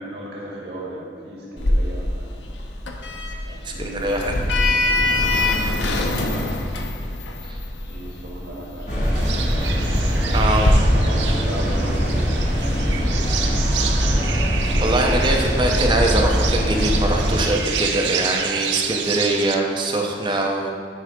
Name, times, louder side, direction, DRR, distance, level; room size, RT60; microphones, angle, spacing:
voice 1, 0.0-2.3 3.4-5.3 6.1-6.6 7.8-9.0 10.5-13.0, right 1 dB, 75° right, -5 dB, 1.7 m, -36 dB
Sliding door, 1.6-10.7, left 2 dB, 85° left, 0.7 m, -24 dB
voice 2, 3.6-4.3 7.4-7.6 10.3-10.7 14.8-20.7, right 1 dB, 25° right, 1 dB, 0.6 m, -22 dB
Mall Vent Vacant, 8.9-17.5, equal, 40° left, 1.8 m, -21 dB
sound 1, 9.1-19.6, right 7 dB, 90° right, 0.5 m, -29 dB
9.6 x 3.3 x 5.1 m, 2.1 s
head